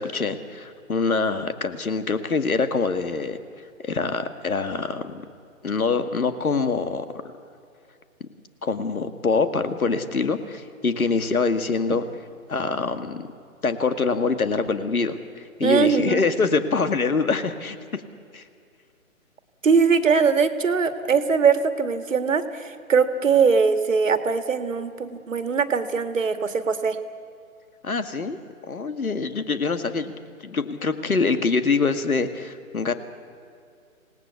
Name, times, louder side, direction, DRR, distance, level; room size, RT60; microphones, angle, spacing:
voice 1, 0.0-3.4 3.8-5.2 5.6-7.1 8.2-8.3 8.6-12.0 12.5-13.3 13.6-18.0 18.3-18.4 27.8-28.4 28.7-30.1 30.4-32.9, left 4 dB, 80° left, 9 dB, 2.1 m, -24 dB
voice 2, 15.6-16.2 19.6-27.0, right 5 dB, 60° right, 9 dB, 2.0 m, -21 dB
26.5 x 18.5 x 8.2 m, 2.4 s
figure-of-eight pair, 155°, 43 cm